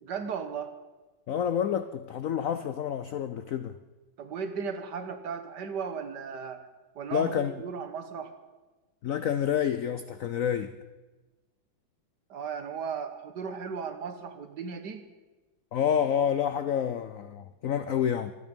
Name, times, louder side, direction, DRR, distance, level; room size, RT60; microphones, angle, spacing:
voice 1, 0.0-0.7 4.2-6.7 6.9-8.3 12.3-15.0, right 6 dB, 60° right, 1.7 m, -36 dB
voice 2, 1.3-3.8 7.1-7.5 9.0-10.8 15.7-18.3, left 9 dB, 75° left, 0.7 m, -28 dB
25.5 x 10.0 x 5.3 m
omnidirectional pair, 2.2 m